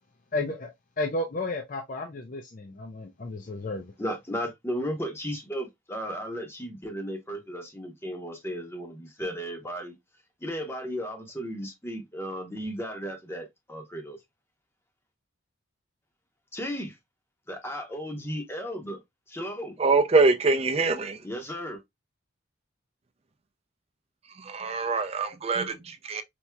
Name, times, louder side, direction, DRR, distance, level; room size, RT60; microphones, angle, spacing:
voice 1, 0.3-3.8, left 2 dB, 40° left, 0.4 m, -33 dB
voice 2, 4.0-9.9 10.4-14.2 16.5-16.9 17.5-19.0 19.3-19.8 21.2-21.8, equal, 10° left, 0.8 m, -35 dB
voice 3, 19.8-21.2 24.3-26.2, right 3 dB, 30° right, 0.5 m, -24 dB
4.4 x 2.7 x 2.2 m
head